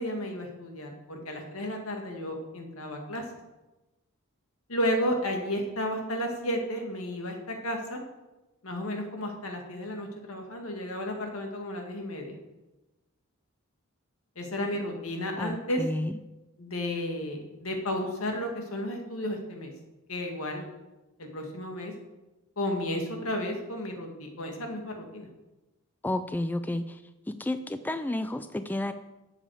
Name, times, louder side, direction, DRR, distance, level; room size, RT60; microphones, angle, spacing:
voice 1, 0.0-3.2 4.7-8.0 8.6-12.4 14.4-15.8 16.6-19.7 20.1-20.7 21.2-21.9 22.6-25.3, left 1 dB, 70° left, 3 dB, 2.0 m, -33 dB
voice 2, 15.4-16.1 26.0-27.0 27.3-28.9, left 1 dB, 10° left, 11 dB, 0.3 m, -31 dB
12.0 x 7.7 x 4.9 m, 1.1 s
head